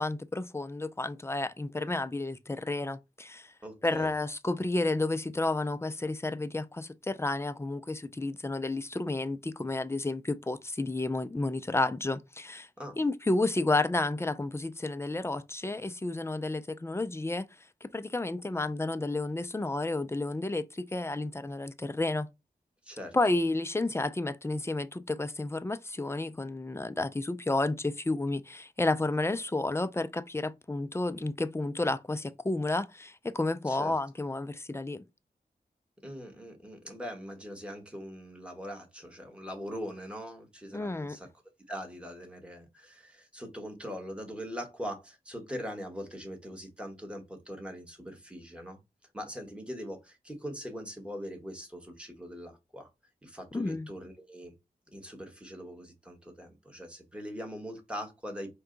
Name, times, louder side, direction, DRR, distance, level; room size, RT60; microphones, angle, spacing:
voice 1, 0.0-3.5 3.8-12.7 13.0-17.5 17.8-22.3 23.1-35.0 40.7-41.2 53.5-53.9, left 2 dB, 15° left, 0.4 m, -31 dB
voice 2, 3.6-4.1 12.8-13.0 22.8-23.2 33.7-33.9 36.0-41.3 41.7-48.8 49.1-52.9 53.2-54.5 54.9-58.5, equal, 5° right, 1.3 m, -41 dB
4.6 x 2.2 x 3.8 m
wide cardioid pair, 75°, 16 cm